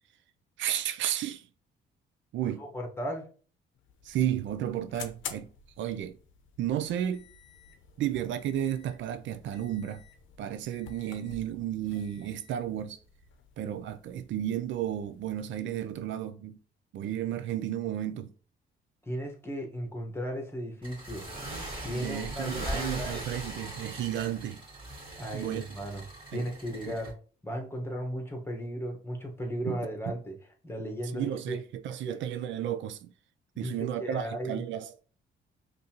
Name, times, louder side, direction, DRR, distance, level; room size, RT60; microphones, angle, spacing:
voice 1, 0.6-1.5 2.3-2.6 4.0-5.5 5.8-6.2 6.6-7.3 8.0-10.0 10.4-13.0 13.6-16.6 16.9-18.3 21.9-24.6 25.3-25.6 26.3-26.5 26.9-27.0 29.6-29.8 30.1-30.2 31.1-33.1 33.6-34.9, right 11 dB, 75° right, 0.4 m, -33 dB
voice 2, 2.6-3.3 19.0-21.2 21.8-23.2 25.2-26.0 26.3-27.1 27.4-30.3 30.6-31.6 32.0-32.2 33.5-34.6, equal, 10° left, 1.3 m, -35 dB
sound 1, 3.7-16.2, left 7 dB, 75° left, 0.7 m, -50 dB
sound 2, 20.8-27.1, right 1 dB, 25° right, 2.2 m, -39 dB
5.3 x 2.7 x 2.9 m
cardioid pair, 90°, 20 cm